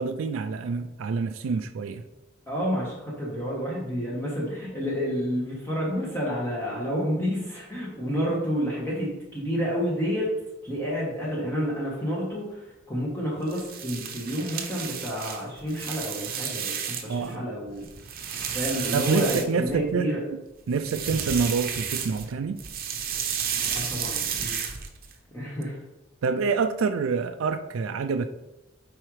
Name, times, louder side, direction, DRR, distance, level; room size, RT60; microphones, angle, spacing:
voice 1, 0.0-2.0 17.1-17.5 18.9-20.1 20.7-22.6 26.2-28.3, right 5 dB, 80° right, 7 dB, 0.4 m, -27 dB
voice 2, 2.5-10.3 10.6-12.6 12.9-17.9 18.5-20.2 23.7-24.6 25.3-25.8, equal, 10° left, -5 dB, 1.2 m, -29 dB
sound 1, 13.4-17.3 17.7-19.9 20.7-22.3 22.6-25.1, right 7 dB, 50° right, 0.8 m, -32 dB
7.5 x 4.8 x 3.2 m, 1.0 s
head